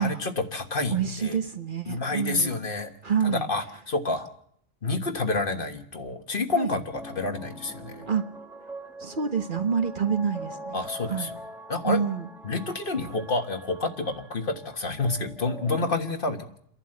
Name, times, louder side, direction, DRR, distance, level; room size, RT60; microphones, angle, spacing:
voice 1, 0.0-1.4 1.9-2.9 3.2-4.3 4.8-8.0 10.7-11.3 11.7-12.0 12.4-16.6, left 3 dB, 45° left, 6 dB, 1.5 m, -29 dB
voice 2, 0.9-2.5 3.0-3.5 6.5-6.7 8.1-8.2 9.0-11.3 11.8-12.3, right 7 dB, 45° right, 8 dB, 1.2 m, -27 dB
sound 1, 6.9-15.9, right 1 dB, ahead, 1.5 m, -43 dB
29.0 x 11.5 x 7.8 m, 0.68 s
omnidirectional pair, 1.2 m